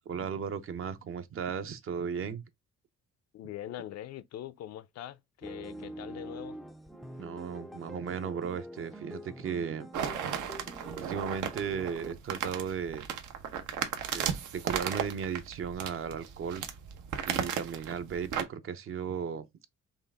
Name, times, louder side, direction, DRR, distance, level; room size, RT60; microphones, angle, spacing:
voice 1, 0.1-2.4 7.2-9.9 10.9-13.1 14.1-16.6 17.3-19.5, right 7 dB, 45° right, 0.6 m, -35 dB
voice 2, 3.3-6.6, left 12 dB, 60° left, 0.5 m, -42 dB
sound 1, 5.4-12.2, equal, ahead, 0.3 m, -45 dB
sound 2, 9.9-18.4, right 8 dB, 85° right, 0.9 m, -35 dB
5.5 x 2.4 x 3.4 m
cardioid pair, 160°, 30 cm